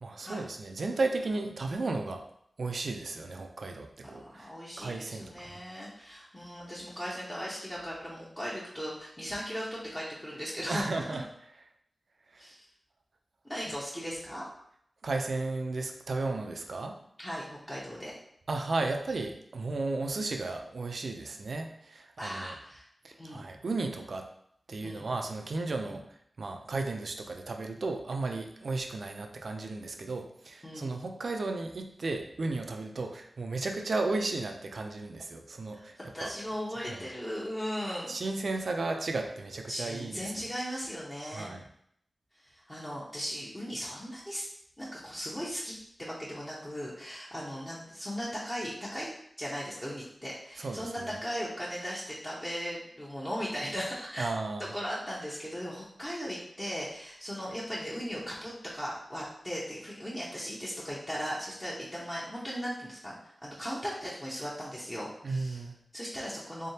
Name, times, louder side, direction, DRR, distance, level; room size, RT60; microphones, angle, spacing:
voice 1, 0.0-2.2 2.6-4.5 4.8-5.6 10.7-11.2 12.3-12.4 15.0-17.0 18.5-22.5 23.0-24.3 24.7-26.1 26.4-36.0 36.2-36.3 36.9-37.1 38.1-40.3 41.3-41.6 50.6-51.1 54.2-54.7 65.2-65.7, right 3 dB, 65° right, 4 dB, 0.5 m, -34 dB
voice 2, 4.0-11.2 12.4-12.6 13.4-14.5 17.2-18.2 22.2-22.9 23.2-23.4 24.8-25.1 25.8-26.0 30.6-31.0 35.7-38.1 39.7-41.5 42.3-44.4 44.8-54.3 54.7-65.6 65.9-66.7, equal, 15° left, -7 dB, 0.8 m, -38 dB
3.6 x 3.4 x 2.8 m, 0.70 s
wide cardioid pair, 75°, 0 cm